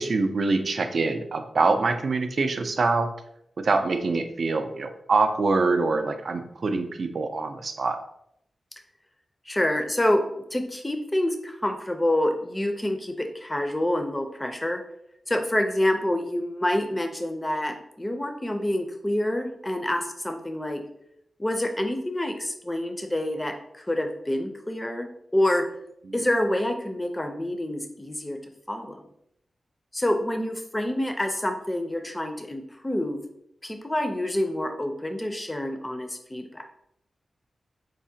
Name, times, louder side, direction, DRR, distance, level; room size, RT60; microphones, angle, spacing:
voice 1, 0.0-3.1 3.6-8.0, right 3 dB, 65° right, 8 dB, 0.3 m, -24 dB
voice 2, 9.5-10.2 10.5-14.8 15.3-20.8 21.4-25.7 26.1-28.4 28.7-29.0 29.9-33.2 33.6-36.6, left 1 dB, 20° left, 5 dB, 0.4 m, -27 dB
4.5 x 2.1 x 2.7 m, 0.76 s
cardioid pair, 65°, 0 cm